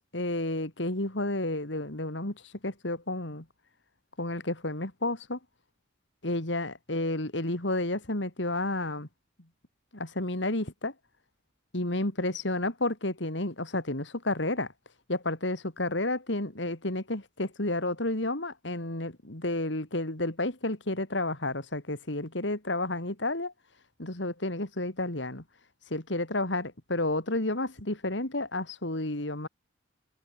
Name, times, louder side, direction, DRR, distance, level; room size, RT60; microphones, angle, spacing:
voice 1, 0.1-3.4 4.2-5.4 6.2-9.1 9.9-10.9 11.7-14.7 15.1-23.5 24.0-25.4 25.9-29.5, left 2 dB, 70° left, 3.3 m, -31 dB
head